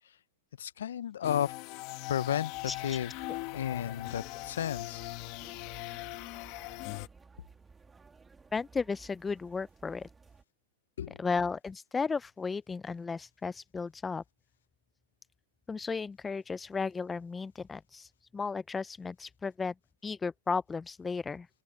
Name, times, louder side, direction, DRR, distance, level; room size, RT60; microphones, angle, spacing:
voice 1, 0.6-1.5 2.1-3.1 3.5-5.0 11.0-11.2, left 10 dB, 85° left, 0.5 m, -33 dB
sound 1, 1.2-7.1, left 21 dB, 40° left, 1.6 m, -40 dB
sound 2, 2.5-10.4, right 4 dB, 10° right, 2.4 m, -56 dB
voice 2, 2.7-3.0 8.5-10.1 11.2-14.2 15.7-18.1 18.3-19.7 20.0-21.5, left 4 dB, 10° left, 0.3 m, -34 dB
open air
supercardioid pair, 145°, 0 cm